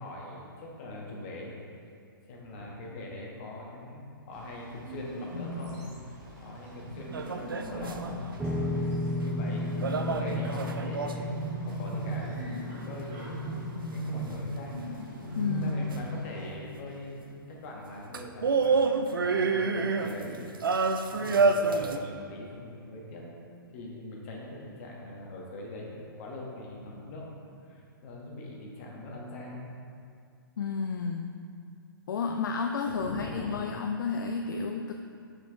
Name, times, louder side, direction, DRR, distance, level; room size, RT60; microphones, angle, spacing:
voice 1, 0.0-1.5 2.3-5.8 6.4-13.4 13.9-14.8 15.5-20.4 21.1-23.3 23.7-27.3 27.6-29.6 32.9-33.5, left 1 dB, 35° left, -2 dB, 1.3 m, -42 dB
Bird, 4.3-16.5, equal, 40° right, 1.5 m, -38 dB
sound 1, 7.1-8.3 9.8-11.4 15.9-16.0 18.1-22.0, right 4 dB, 70° right, 0.4 m, -27 dB
sound 2, 8.4-14.9, left 1 dB, 10° right, 0.4 m, -35 dB
voice 2, 15.4-15.8 30.6-31.3 32.1-34.9, left 5 dB, 60° left, 3 dB, 0.4 m, -31 dB
6.2 x 5.3 x 3.5 m, 2.3 s
figure-of-eight pair, 115°, 12 cm